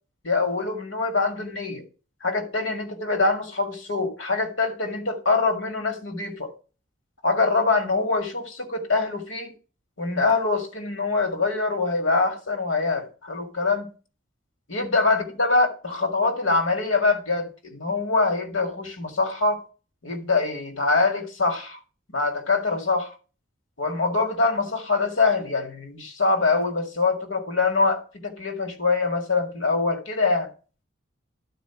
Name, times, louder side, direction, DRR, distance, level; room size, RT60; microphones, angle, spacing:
voice 1, 0.2-1.8 2.2-6.5 7.2-9.5 10.0-13.9 14.7-19.7 20.0-21.8 22.1-23.1 23.8-30.5, left 3 dB, 85° left, 2.0 m, -24 dB
12.0 x 4.5 x 5.8 m
head